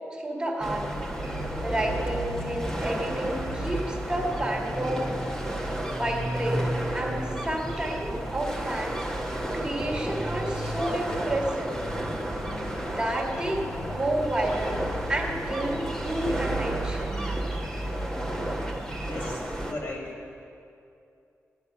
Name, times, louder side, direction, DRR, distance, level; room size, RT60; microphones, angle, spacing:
voice 1, 0.1-0.9 1.6-5.1 6.0-6.6 6.9-9.0 9.5-11.7 12.8-13.7 13.9-17.3, right 1 dB, 15° right, -2 dB, 1.9 m, -30 dB
sound 1, 0.6-19.7, right 1 dB, 15° left, 1.4 m, -31 dB
voice 2, 18.9-20.1, left 1 dB, 50° left, -3 dB, 3.4 m, -37 dB
16.5 x 11.0 x 5.7 m, 2.6 s
wide cardioid pair, 140°, 5 cm